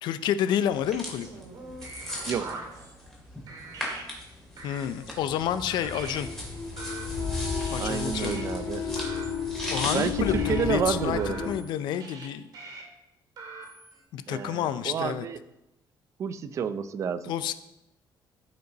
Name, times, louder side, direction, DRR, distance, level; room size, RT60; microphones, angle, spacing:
voice 1, 0.0-1.3 4.6-6.3 7.7-8.4 8.8-9.0 9.7-11.2 11.4-12.5 14.1-15.3 17.3-17.5, left 10 dB, 70° left, 13 dB, 0.5 m, -29 dB
sound 1, 0.7-11.5, left 1 dB, 5° left, 2.2 m, -39 dB
sound 2, 0.8-3.2 3.5-4.0 4.6-5.4 5.7-6.2 6.8-8.4 9.0-10.1 10.3-10.6 11.2-12.3 12.5-12.8 13.4-14.0, right 3 dB, 60° right, 2.4 m, -43 dB
voice 2, 2.3-2.6 7.8-8.8 9.9-11.5 14.3-15.4 16.2-17.3, right 7 dB, 40° right, 13 dB, 0.5 m, -30 dB
sound 3, 5.1-11.5, left 5 dB, 35° left, 2.6 m, -33 dB
14.0 x 5.3 x 4.0 m, 0.90 s
cardioid pair, 170°, 8 cm